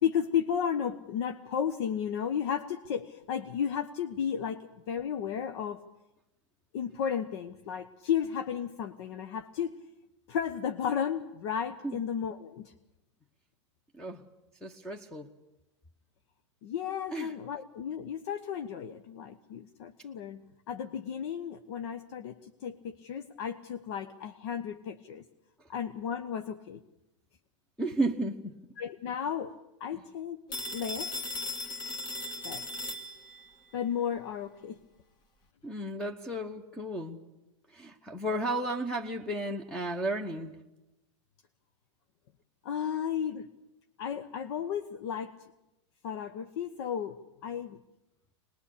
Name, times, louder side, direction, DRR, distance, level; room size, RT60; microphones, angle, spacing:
voice 1, 0.0-5.8 6.7-9.7 10.3-12.7 16.6-20.4 20.7-25.2 25.7-26.8 28.8-29.5 29.8-30.4 30.7-31.1 32.4-32.6 33.7-34.8 42.6-43.5 44.0-45.3 46.0-47.2 47.4-47.8, left 8 dB, 60° left, 1.1 m, -33 dB
voice 2, 14.6-15.3 17.1-17.3 27.8-28.6 35.6-37.2 37.7-40.6, right 1 dB, 5° left, 1.1 m, -33 dB
Telephone, 30.5-33.5, left 2 dB, 25° left, 1.7 m, -37 dB
23.5 x 20.5 x 8.5 m
hypercardioid pair, 130°, 16 cm